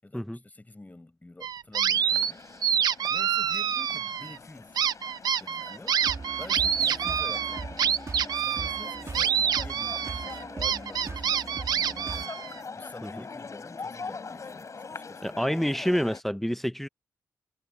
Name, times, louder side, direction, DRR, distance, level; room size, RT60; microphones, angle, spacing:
voice 1, 0.0-2.5 3.1-4.8 5.4-6.1 6.4-8.0 8.3-12.4 12.7-15.4, left 2 dB, 20° left, 7.1 m, -48 dB
sound 1, 1.4-2.3 2.6-4.4 4.8-12.6, right 8 dB, 75° right, 1.2 m, -27 dB
sound 2, 1.9-16.2, left 4 dB, 50° left, 6.0 m, -43 dB
sound 3, 6.0-12.2, right 4 dB, 45° right, 2.8 m, -40 dB
voice 2, 15.2-16.9, equal, 5° left, 1.3 m, -28 dB
supercardioid pair, 45°, 7 cm